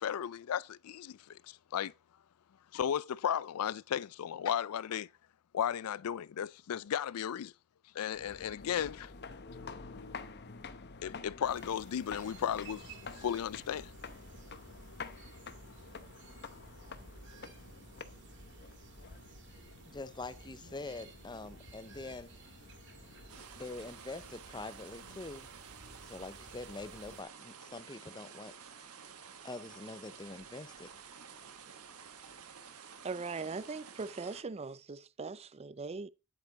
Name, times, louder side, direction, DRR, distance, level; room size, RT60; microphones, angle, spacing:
voice 1, 0.0-1.9 2.7-5.1 5.5-7.5 7.9-9.1 11.0-12.9 13.1-13.9, left 9 dB, 80° left, 0.4 m, -35 dB
sound 1, 8.1-23.4, left 4 dB, 50° left, 0.9 m, -49 dB
sound 2, 11.4-27.2, right 3 dB, 55° right, 1.9 m, -55 dB
voice 2, 19.8-22.3 23.4-25.5 26.0-28.6 29.4-30.9, left 3 dB, 20° left, 0.6 m, -45 dB
sound 3, 23.3-34.4, right 6 dB, 85° right, 1.3 m, -52 dB
voice 3, 33.0-36.1, right 4 dB, 30° right, 0.4 m, -40 dB
9.7 x 8.0 x 4.0 m
head